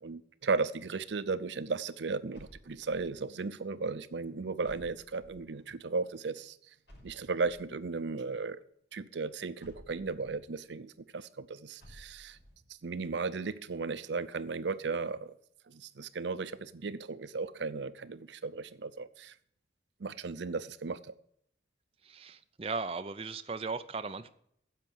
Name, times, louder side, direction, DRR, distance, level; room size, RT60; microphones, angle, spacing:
voice 1, 0.0-6.6 7.0-8.6 8.9-12.4 12.8-15.3 15.7-19.3 20.0-21.1, right 4 dB, 85° right, 0.6 m, -35 dB
sound 1, 2.3-3.3 4.6-5.6 6.9-7.8 9.6-10.5 11.8-12.6, equal, 80° left, 5.7 m, -55 dB
voice 2, 22.0-24.3, right 4 dB, 30° right, 0.5 m, -37 dB
10.5 x 7.2 x 7.7 m
head